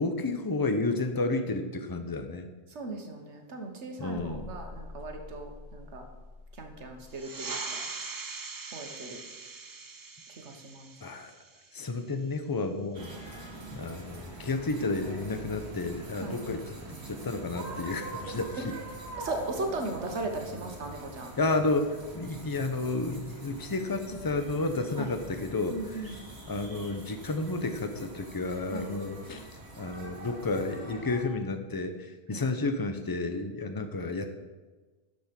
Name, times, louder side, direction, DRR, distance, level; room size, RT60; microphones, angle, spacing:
voice 1, 0.0-2.5 4.0-4.5 11.0-11.3 11.7-13.1 13.7-16.6 16.9-18.8 21.4-26.2 26.5-29.5 29.8-34.3, left 3 dB, 25° left, 7 dB, 0.6 m, -31 dB
voice 2, 2.7-6.0 6.6-7.8 8.7-9.2 10.4-10.9 16.2-16.5 19.2-21.3 25.0-25.1 25.7-26.2 28.7-28.9 32.3-32.4, right 2 dB, 85° right, 4 dB, 1.5 m, -37 dB
sound 1, 4.1-7.2, left 3 dB, 65° left, 1.2 m, -46 dB
sound 2, 7.1-12.2, right 4 dB, 35° right, 0.3 m, -41 dB
sound 3, 12.9-31.2, right 2 dB, 70° right, 1.8 m, -44 dB
12.5 x 5.2 x 5.2 m, 1.3 s
omnidirectional pair, 1.1 m